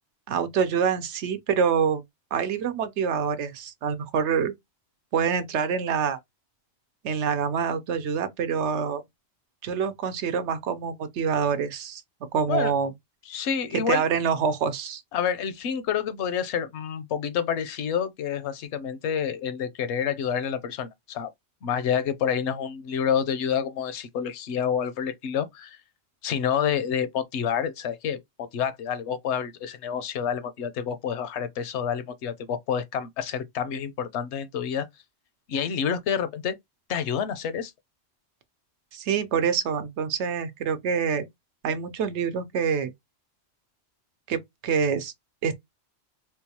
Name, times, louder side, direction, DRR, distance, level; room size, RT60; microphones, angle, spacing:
voice 1, 0.3-2.0 2.3-4.5 5.1-6.2 7.0-9.0 9.6-12.0 12.3-12.9 13.9-15.0 38.9-41.3 41.6-42.9 44.3-45.1 45.4-45.5, right 6 dB, 85° right, 1.0 m, -26 dB
voice 2, 13.3-14.0 15.1-21.3 21.6-25.8 26.2-34.9 35.5-36.6 36.9-37.7, left 8 dB, 80° left, 0.9 m, -28 dB
3.7 x 2.3 x 2.8 m
omnidirectional pair, 1.1 m